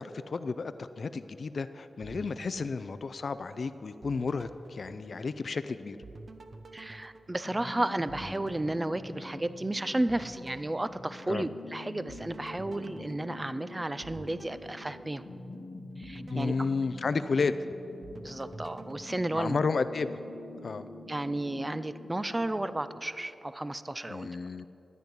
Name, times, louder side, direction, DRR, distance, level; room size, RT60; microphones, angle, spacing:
voice 1, 0.0-6.0 11.3-11.5 16.3-17.5 19.3-20.2 20.6-20.8 24.1-24.7, left 4 dB, 65° left, 12 dB, 0.4 m, -32 dB
sound 1, 2.0-3.6 4.0-5.6 6.0-9.7 10.1-11.7 12.1-15.6 16.0-17.6 18.0-20.0, right 3 dB, 60° right, 0.8 m, -50 dB
voice 2, 6.7-15.2 16.0-16.5 18.2-19.6 21.1-24.3, right 1 dB, 20° right, 14 dB, 0.4 m, -33 dB
sound 2, 7.4-23.0, left 2 dB, 80° left, 1.0 m, -46 dB
13.0 x 9.4 x 5.3 m, 2.9 s
cardioid pair, 65°, 0 cm